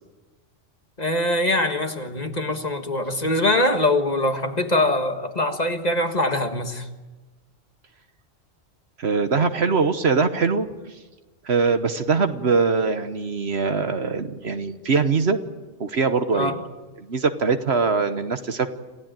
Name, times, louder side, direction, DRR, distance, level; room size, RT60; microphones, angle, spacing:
voice 1, 1.0-6.9 16.3-16.6, left 1 dB, 35° left, 6 dB, 1.6 m, -23 dB
voice 2, 9.0-11.0 11.4-15.4 15.8-16.5 17.0-18.7, right 4 dB, 55° right, 9 dB, 1.4 m, -22 dB
27.5 x 16.0 x 9.0 m, 1.2 s
omnidirectional pair, 1.3 m